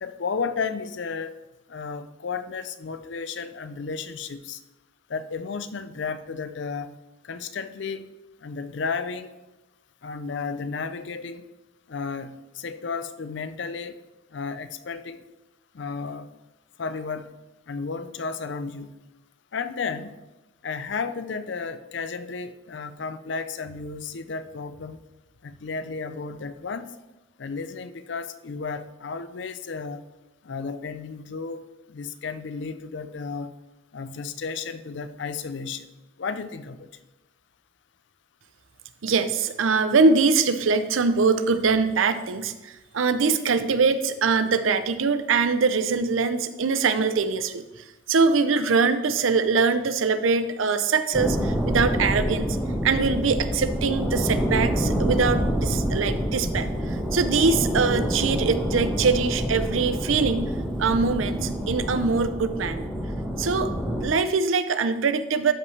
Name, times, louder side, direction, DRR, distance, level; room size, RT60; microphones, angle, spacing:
voice 1, 0.0-1.3 1.7-4.6 5.1-7.0 7.2-8.1 8.4-9.3 10.0-11.5 11.9-14.0 14.3-15.2 15.7-16.3 16.8-17.3 17.7-19.0 19.5-20.2 20.6-25.0 25.4-27.0 27.4-30.1 30.4-33.6 33.9-35.9 36.2-36.9, left 5 dB, 65° left, 12 dB, 0.5 m, -33 dB
voice 2, 39.0-52.6 52.8-60.5 60.8-62.9 63.4-65.5, right 4 dB, 80° right, 11 dB, 0.6 m, -23 dB
sound 1, 51.1-64.0, equal, 5° right, 1.2 m, -27 dB
12.0 x 5.4 x 3.2 m, 1.1 s
head